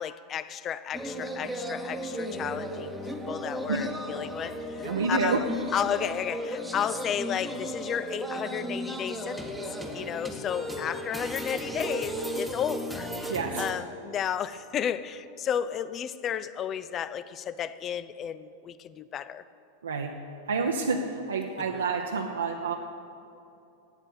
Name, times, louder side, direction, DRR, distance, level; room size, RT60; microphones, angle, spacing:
voice 1, 0.0-5.5 5.7-9.5 9.9-19.4 21.7-21.8, left 9 dB, 30° left, 0.4 m, -33 dB
sound 1, 0.9-13.7, equal, ahead, 1.1 m, -35 dB
voice 2, 4.8-5.4 13.3-13.7 19.8-20.1 20.5-22.8, right 4 dB, 70° right, 0.8 m, -28 dB
13.0 x 8.9 x 8.3 m
figure-of-eight pair, 90°, 0 cm